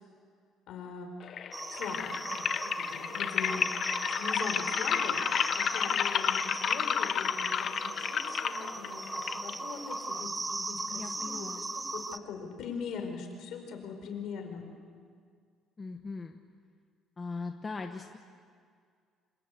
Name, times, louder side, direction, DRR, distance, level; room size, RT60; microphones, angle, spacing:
voice 1, 0.7-1.1 1.7-3.7 4.1-5.2 5.6-14.7, left 5 dB, 60° left, 5 dB, 4.8 m, -41 dB
sound 1, 1.2-10.2, left 8 dB, 40° left, 0.7 m, -32 dB
sound 2, 1.5-12.2, right 2 dB, 10° right, 0.7 m, -38 dB
voice 2, 10.9-11.6 15.8-16.4 17.2-18.2, left 4 dB, 20° left, 4 dB, 1.1 m, -39 dB
27.0 x 26.5 x 8.3 m, 2.1 s
cardioid pair, 165°, 0 cm